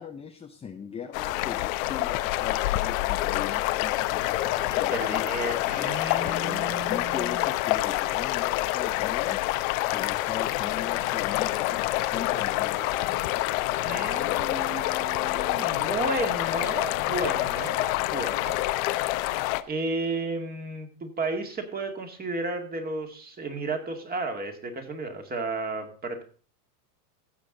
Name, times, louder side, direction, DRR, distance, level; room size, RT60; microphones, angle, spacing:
voice 1, 0.0-5.4 5.7-9.4 9.9-13.6, left 7 dB, 15° left, 4 dB, 0.6 m, -39 dB
sound 1, 1.1-19.6, left 17 dB, 60° left, 0.8 m, -27 dB
voice 2, 4.7-7.6 13.8-18.6 19.7-26.2, right 2 dB, 20° right, 5 dB, 2.1 m, -33 dB
15.5 x 7.2 x 3.9 m, 0.41 s
supercardioid pair, 135°, 46 cm